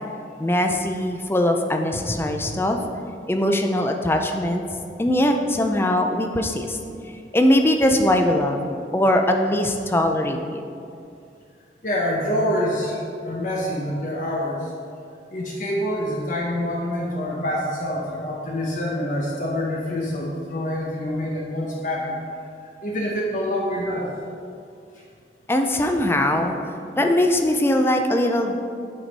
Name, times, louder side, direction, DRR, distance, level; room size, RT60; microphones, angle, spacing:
voice 1, 0.4-2.8 3.3-4.6 5.0-6.8 7.3-10.6 25.5-26.6 26.9-28.6, left 1 dB, 15° left, 4 dB, 0.5 m, -21 dB
voice 2, 11.8-14.7 15.3-22.2 22.8-24.1, left 1 dB, 45° left, -3 dB, 0.9 m, -26 dB
8.9 x 5.2 x 4.1 m, 2.5 s
head